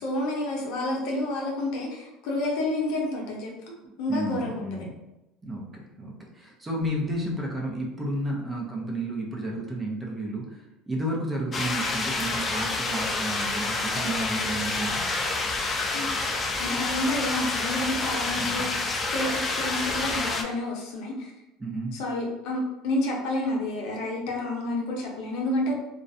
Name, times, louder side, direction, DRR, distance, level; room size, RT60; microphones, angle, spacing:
voice 1, 0.0-4.7 15.9-16.2 16.6-18.7 19.1-21.3 21.9-25.7, left 1 dB, 70° left, -1 dB, 0.7 m, -29 dB
voice 2, 4.1-4.9 5.4-15.1 18.4-18.7 21.6-22.0, right 1 dB, 20° right, -1 dB, 0.6 m, -32 dB
sound 1, 11.5-20.4, left 3 dB, 25° left, 0.3 m, -28 dB
2.4 x 2.1 x 2.6 m, 0.95 s
supercardioid pair, 105°, 0 cm